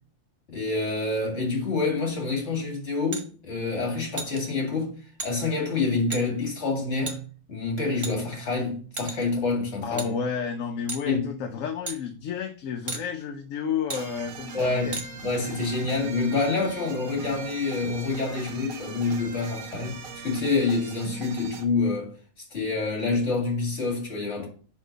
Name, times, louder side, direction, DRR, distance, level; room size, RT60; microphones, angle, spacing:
voice 1, 0.5-4.9 5.2-7.2 7.5-10.2 11.1-11.3 14.5-22.1 22.5-24.5, left 3 dB, 55° left, 2.3 m, -27 dB
sound 1, 3.1-3.3 4.2-4.4 5.2-5.3 6.1-6.2 7.1-7.2 8.0-8.5 9.0-9.3 10.0-10.1 10.9-11.1 11.9-12.0 12.9-13.0 13.9-14.0 14.9-15.1, right 3 dB, 30° right, 0.7 m, -33 dB
voice 2, 9.8-15.0, left 6 dB, 75° left, 1.0 m, -31 dB
sound 2, 13.9-21.6, right 4 dB, 90° right, 1.3 m, -40 dB
5.1 x 4.3 x 5.1 m
omnidirectional pair, 1.4 m